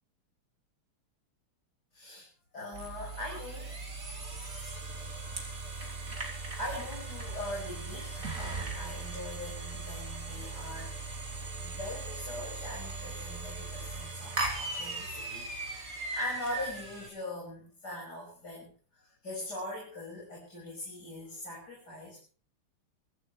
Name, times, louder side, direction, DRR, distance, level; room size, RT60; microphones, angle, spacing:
voice 1, 1.9-2.3 2.5-3.7 4.4-4.8 6.6-10.9 11.6-15.5 15.9-22.2, left 1 dB, 45° left, -3 dB, 6.5 m, -41 dB
sound 1, 2.7-17.1, right 3 dB, 40° right, 4.0 m, -38 dB
23.5 x 15.5 x 3.3 m, 0.39 s
omnidirectional pair, 2.4 m